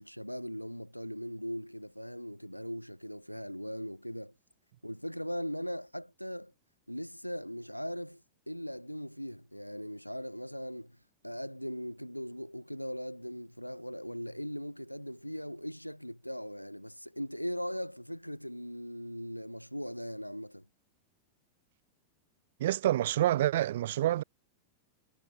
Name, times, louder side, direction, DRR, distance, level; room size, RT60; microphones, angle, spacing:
voice 1, 0.0-4.3 4.8-6.5 6.9-8.2 8.5-11.0 11.2-20.6, equal, 90° left, 2.3 m, -39 dB
voice 2, 22.6-24.2, right 13 dB, 60° right, 4.2 m, -27 dB
figure-of-eight pair, 90°, 0 cm